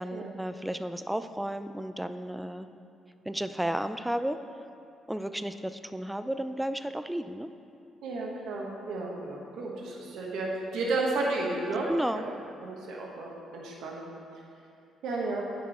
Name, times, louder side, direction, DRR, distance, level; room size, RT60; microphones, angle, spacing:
voice 1, 0.0-2.7 3.3-4.4 5.1-7.5 11.9-12.2, right 1 dB, 5° right, 10 dB, 0.3 m, -33 dB
voice 2, 8.0-11.9 12.1-12.3 12.6-14.1 15.0-15.4, right 2 dB, 80° right, -2 dB, 1.3 m, -33 dB
8.5 x 6.0 x 4.2 m, 2.5 s
cardioid pair, 90°, 0 cm